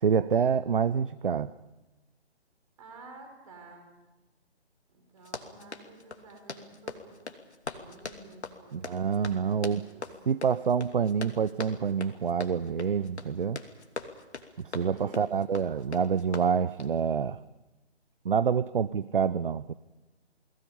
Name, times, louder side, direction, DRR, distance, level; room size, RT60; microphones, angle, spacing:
voice 1, 0.0-1.5 8.7-9.9 10.3-13.6 14.6-17.4 18.2-19.7, right 6 dB, 50° right, 16 dB, 0.7 m, -27 dB
voice 2, 2.8-3.9 4.9-7.3 7.7-10.0 14.7-15.5, right 3 dB, 30° right, 4 dB, 6.1 m, -51 dB
Run, 5.2-17.0, left 4 dB, 80° left, 2.8 m, -42 dB
29.5 x 21.0 x 5.5 m, 1.1 s
figure-of-eight pair, 155°, 33 cm